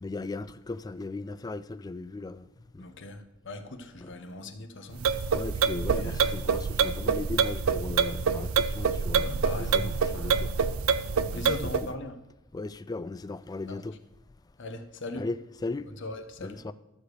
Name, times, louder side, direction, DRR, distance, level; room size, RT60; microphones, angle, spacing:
voice 1, 0.0-2.5 2.7-2.9 4.0-4.2 5.3-10.5 11.3-11.5 12.5-14.0 15.2-15.9 16.4-16.7, left 3 dB, 20° left, 0.3 m, -37 dB
voice 2, 2.8-5.0 6.0-6.5 9.1-10.5 11.2-12.2 13.7-13.9 14.6-15.3 15.9-16.6, left 2 dB, 60° left, 0.9 m, -39 dB
sound 1, 4.9-11.9, right 5 dB, 80° right, 0.5 m, -26 dB
12.5 x 4.9 x 6.5 m
head